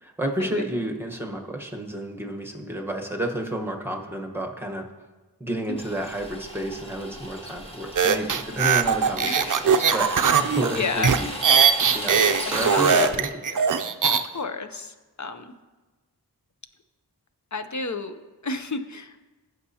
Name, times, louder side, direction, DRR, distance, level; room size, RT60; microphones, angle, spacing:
voice 1, 0.0-4.9 5.4-11.3 11.8-13.3, right 1 dB, 5° right, 1 dB, 1.1 m, -31 dB
sound 1, 5.8-13.1, equal, 15° left, 1.3 m, -36 dB
sound 2, 8.0-14.2, right 6 dB, 55° right, 0.5 m, -20 dB
voice 2, 9.2-9.6 10.7-11.1 12.4-13.1 13.5-13.8 14.1-15.5 17.5-18.1 18.4-19.1, left 3 dB, 45° left, 9 dB, 0.6 m, -31 dB
15.5 x 6.5 x 2.8 m, 1.2 s
wide cardioid pair, 45°, 39 cm